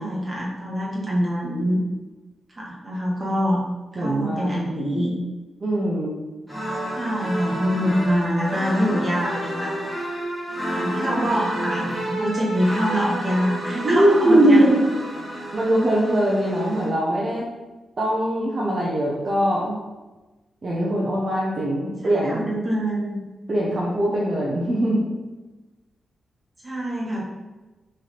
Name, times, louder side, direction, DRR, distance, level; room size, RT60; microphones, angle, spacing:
voice 1, 0.0-1.8 2.5-3.6 3.9-5.1 7.0-9.7 10.7-14.7 22.0-23.2 26.6-27.2, equal, 30° right, -4 dB, 1.2 m, -25 dB
voice 2, 4.0-4.6 5.6-6.1 13.8-14.8 15.5-17.5 18.0-19.8 20.6-22.4 23.5-25.0, right 1 dB, 45° right, -6 dB, 0.7 m, -21 dB
sound 1, 6.5-16.9, equal, ahead, 1.1 m, -30 dB
3.2 x 2.7 x 4.1 m, 1.2 s
cardioid pair, 95°, 0 cm